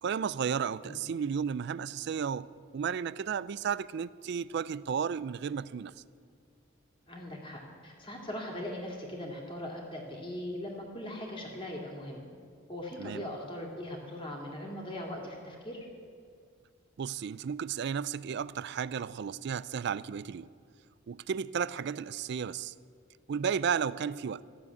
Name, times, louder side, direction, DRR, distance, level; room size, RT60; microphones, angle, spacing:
voice 1, 0.0-2.5 2.7-5.9 13.0-13.2 17.0-20.5 21.1-22.7 23.3-24.4, right 7 dB, 55° right, 0.3 m, -33 dB
voice 2, 7.1-12.2 12.7-15.8, left 1 dB, 25° left, 2.3 m, -40 dB
14.0 x 7.4 x 9.5 m
head